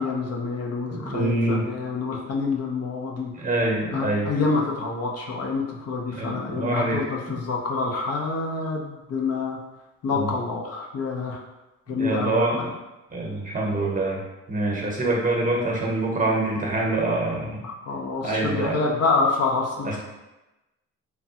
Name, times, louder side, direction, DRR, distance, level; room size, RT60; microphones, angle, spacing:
voice 1, 0.0-3.3 3.9-9.6 10.0-11.4 11.9-12.7 17.6-20.0, left 4 dB, 55° left, 0 dB, 0.6 m, -27 dB
voice 2, 0.9-1.6 3.3-4.3 6.1-7.0 7.3-7.4 10.1-10.3 11.9-12.7 13.1-14.2 14.5-17.6 18.2-18.8 19.8-20.0, right 2 dB, 25° right, -2 dB, 0.8 m, -25 dB
3.2 x 2.2 x 2.7 m, 1.0 s
cardioid pair, 90°, 30 cm